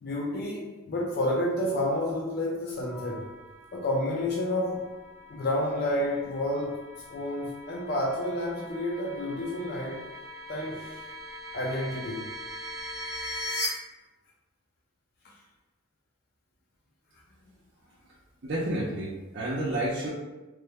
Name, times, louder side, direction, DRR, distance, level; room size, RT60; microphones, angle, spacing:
voice 1, 0.0-3.3 3.7-4.9 5.3-6.8 7.1-10.0 10.5-11.0 11.5-12.3 15.2-15.3, left 1 dB, 50° left, -3 dB, 0.4 m, -30 dB
sound 1, 2.7-13.7, left 1 dB, 5° right, 0.6 m, -41 dB
voice 2, 18.4-20.1, right 1 dB, 50° right, -5 dB, 0.4 m, -30 dB
3.1 x 2.1 x 3.4 m, 1.1 s
head